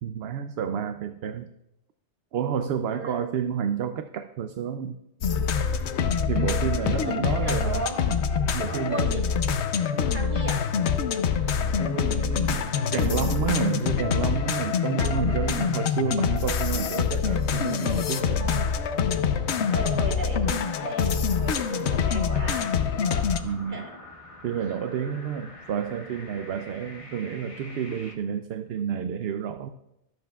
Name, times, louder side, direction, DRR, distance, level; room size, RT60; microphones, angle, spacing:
voice 1, 0.0-1.5 2.3-5.0 6.3-7.9 8.5-9.2 11.8-18.6 23.4-23.8 24.4-29.7, right 7 dB, 65° right, 8 dB, 0.8 m, -30 dB
voice 2, 2.9-3.3 6.5-8.2 8.6-9.2 10.0-10.7 12.5-12.6 15.0-15.5 18.4-18.7 19.7-22.7 23.7-23.9, right 2 dB, 45° right, 0 dB, 1.8 m, -36 dB
sound 1, 5.2-23.4, left 6 dB, 70° left, 1.0 m, -25 dB
sound 2, 11.6-28.1, left 1 dB, 30° left, 1.2 m, -46 dB
24.0 x 8.0 x 2.4 m, 0.85 s
omnidirectional pair, 1.2 m